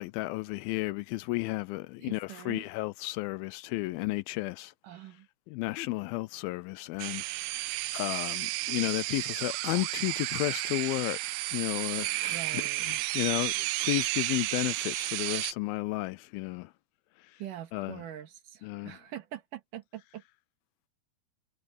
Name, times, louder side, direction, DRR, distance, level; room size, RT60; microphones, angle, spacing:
voice 1, 0.0-4.7 5.5-7.2 7.9-11.2 11.5-16.7 17.7-18.0 18.6-19.0, left 20 dB, 80° left, 2.2 m, -33 dB
voice 2, 2.0-2.7 4.8-5.3 11.9-13.3 17.4-20.2, right 11 dB, 60° right, 3.0 m, -44 dB
sound 1, 7.0-15.5, right 19 dB, 90° right, 2.6 m, -32 dB
omnidirectional pair, 4.5 m